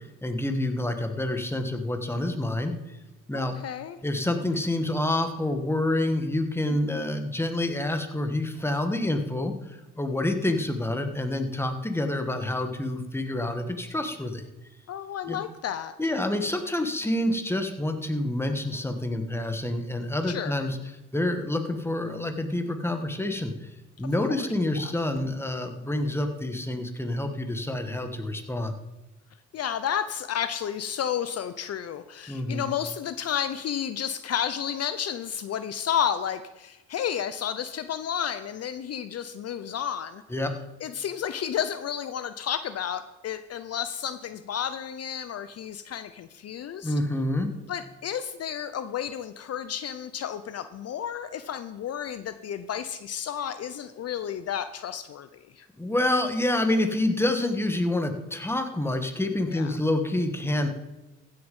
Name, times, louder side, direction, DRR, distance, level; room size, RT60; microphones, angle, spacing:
voice 1, 0.2-2.8 3.3-3.6 4.0-9.5 10.0-14.4 15.3-15.4 16.0-20.8 21.1-23.5 24.0-28.7 32.3-32.6 40.3-40.5 46.8-47.5 55.8-60.7, left 1 dB, 10° left, 6 dB, 1.4 m, -27 dB
voice 2, 3.3-4.0 6.7-7.0 14.9-15.9 20.3-20.5 24.3-24.5 24.8-24.9 29.5-40.2 40.8-47.0 47.7-55.7 59.5-59.8, left 9 dB, 55° left, 12 dB, 0.6 m, -32 dB
15.0 x 6.7 x 5.4 m, 1.0 s
cardioid pair, 90°, 30 cm